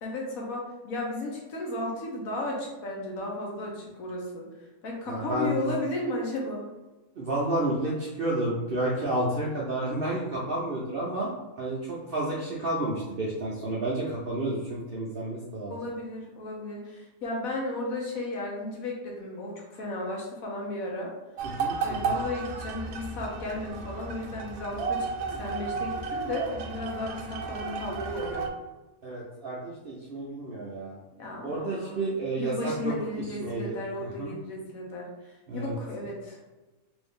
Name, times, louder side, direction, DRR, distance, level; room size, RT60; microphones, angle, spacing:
voice 1, 0.0-4.5 4.8-6.6 15.7-21.1 21.8-28.5 31.2-32.0 32.3-36.4, left 2 dB, 65° left, -2 dB, 1.3 m, -34 dB
voice 2, 5.1-5.7 7.2-11.3 11.6-15.8 21.6-22.2 25.3-25.4 29.0-31.0 31.4-34.3 35.5-35.8, right 2 dB, 55° right, -5 dB, 0.6 m, -31 dB
sound 1, 21.4-28.5, right 5 dB, 75° right, 1.0 m, -33 dB
3.6 x 2.6 x 3.6 m, 1.1 s
omnidirectional pair, 1.7 m